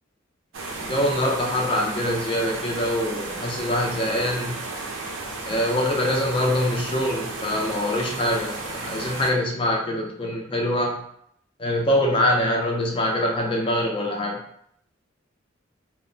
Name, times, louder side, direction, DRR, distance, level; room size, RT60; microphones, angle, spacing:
sound 1, 0.5-9.3, right 3 dB, 75° right, 0.5 m, -33 dB
voice 1, 0.7-4.6 5.5-11.0 11.6-14.4, left 1 dB, 25° left, 0 dB, 0.5 m, -24 dB
2.0 x 2.0 x 3.7 m, 0.70 s
head